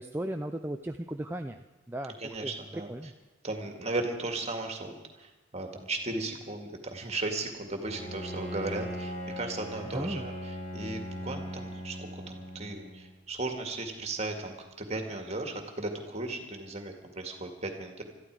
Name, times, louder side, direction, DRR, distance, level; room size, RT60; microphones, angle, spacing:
voice 1, 0.0-1.6 1.9-2.1 2.4-2.5 2.9-3.1 9.9-10.2, right 1 dB, 10° right, 4 dB, 0.5 m, -35 dB
voice 2, 2.2-3.1 3.4-18.0, right 2 dB, 35° right, 4 dB, 2.0 m, -36 dB
Bowed string instrument, 7.8-13.2, equal, 35° left, 3.0 m, -39 dB
21.5 x 14.0 x 4.8 m, 1.1 s
head